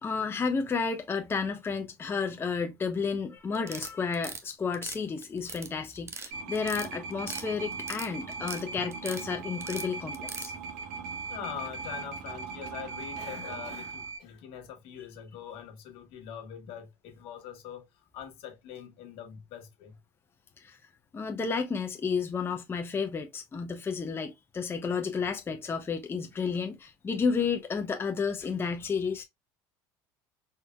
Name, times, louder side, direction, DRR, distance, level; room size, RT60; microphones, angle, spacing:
voice 1, 0.0-10.5 20.6-20.8 21.1-29.2, left 5 dB, 25° left, 0.7 m, -31 dB
sound 1, 3.5-4.4 4.7-5.7 6.0-6.3 6.6-7.5 7.7-8.6 8.9-9.2 9.6-10.5, right 4 dB, 25° right, 0.9 m, -39 dB
sound 2, 6.3-14.2, right 4 dB, 85° right, 1.4 m, -39 dB
voice 2, 11.3-17.9 18.1-20.0, left 9 dB, 70° left, 1.3 m, -43 dB
4.4 x 3.5 x 2.2 m
supercardioid pair, 95°, 10 cm